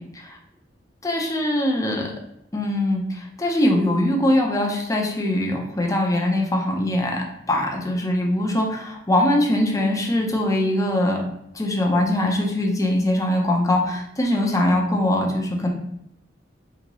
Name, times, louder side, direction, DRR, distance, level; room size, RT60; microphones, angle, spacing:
voice 1, 1.0-2.1 2.5-7.2 7.5-11.2 11.5-15.7, left 1 dB, 20° left, 0 dB, 0.6 m, -22 dB
3.9 x 2.8 x 2.9 m, 0.77 s
head